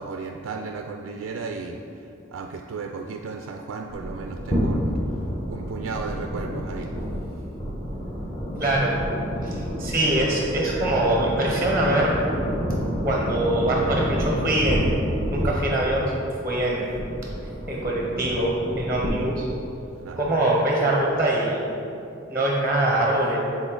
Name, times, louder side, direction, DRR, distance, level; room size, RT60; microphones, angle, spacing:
voice 1, 0.0-7.0 20.0-20.3, right 4 dB, 80° right, 3 dB, 0.3 m, -35 dB
sound 1, 3.9-19.1, equal, 20° left, 1.2 m, -29 dB
voice 2, 8.6-9.0 9.4-12.1 13.0-16.1 16.4-16.9 17.7-19.5 20.2-21.6 22.3-23.4, right 1 dB, 15° right, -3 dB, 0.6 m, -23 dB
7.0 x 3.9 x 3.8 m, 2.7 s
head